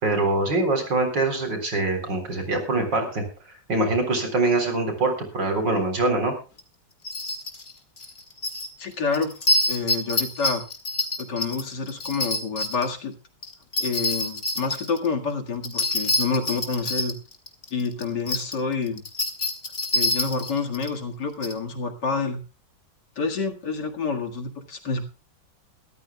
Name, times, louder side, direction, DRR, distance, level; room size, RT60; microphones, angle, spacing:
voice 1, 0.0-3.2 3.7-6.3, right 2 dB, 80° right, 5 dB, 4.4 m, -24 dB
sound 1, 6.6-6.7 7.0-7.7 8.0-8.7 9.1-12.9 13.4-15.1 15.6-18.5 18.9-20.9 21.4-21.5, left 2 dB, 45° left, 2.2 m, -26 dB
voice 2, 8.8-9.3 9.7-10.6 11.2-13.1 13.8-17.2 17.7-19.0 19.9-22.4 23.2-25.1, left 4 dB, 70° left, 3 dB, 2.5 m, -28 dB
23.0 x 14.0 x 2.3 m, 0.33 s
omnidirectional pair, 1.9 m